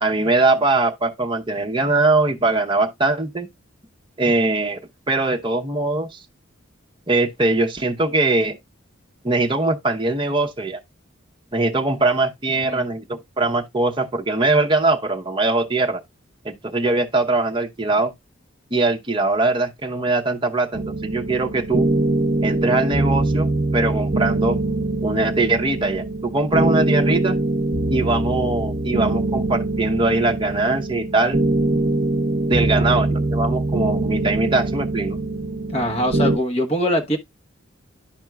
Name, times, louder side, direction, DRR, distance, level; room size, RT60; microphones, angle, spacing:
voice 1, 0.0-3.5 4.2-4.8 5.1-6.2 7.1-8.6 9.2-10.8 11.5-16.0 16.4-18.1 18.7-21.9 22.4-23.5 23.7-24.6 25.0-27.4 27.9-31.4 32.5-35.2, right 2 dB, 25° right, 0.7 m, -21 dB
sound 1, 20.7-36.4, right 2 dB, 55° right, 0.8 m, -23 dB
voice 2, 35.7-37.2, equal, 30° left, 1.1 m, -23 dB
12.0 x 4.4 x 2.3 m
head